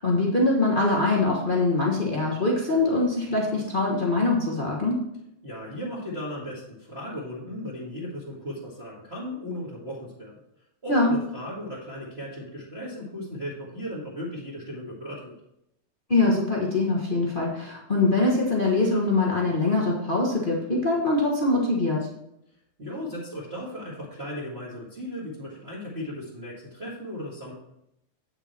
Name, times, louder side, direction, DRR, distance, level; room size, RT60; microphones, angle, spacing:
voice 1, 0.0-5.0 10.9-11.1 16.1-22.1, left 2 dB, 65° left, -3 dB, 0.5 m, -23 dB
voice 2, 5.4-10.3 10.8-15.3 22.8-27.5, equal, 25° right, -6 dB, 1.8 m, -36 dB
8.8 x 6.9 x 4.4 m, 0.81 s
omnidirectional pair, 3.3 m